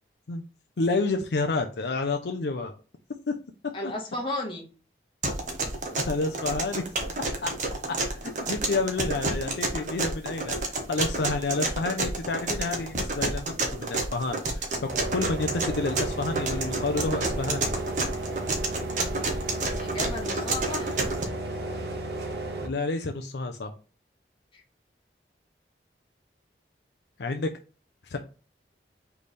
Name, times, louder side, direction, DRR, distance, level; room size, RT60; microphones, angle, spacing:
voice 1, 0.8-2.7 3.3-3.4 3.8-3.9 6.1-6.8 7.4-7.5 8.4-10.6 10.9-17.7 22.6-23.7 27.2-27.5 28.1-28.2, left 3 dB, 75° left, 5 dB, 0.5 m, -29 dB
voice 2, 3.7-4.7 19.8-20.9 24.5-24.6, left 2 dB, 30° left, 0 dB, 1.2 m, -34 dB
sound 1, 5.2-21.2, right 2 dB, 45° right, 0.9 m, -30 dB
sound 2, 14.9-22.7, right 2 dB, 70° right, 1.0 m, -33 dB
3.4 x 3.4 x 4.1 m, 0.34 s
head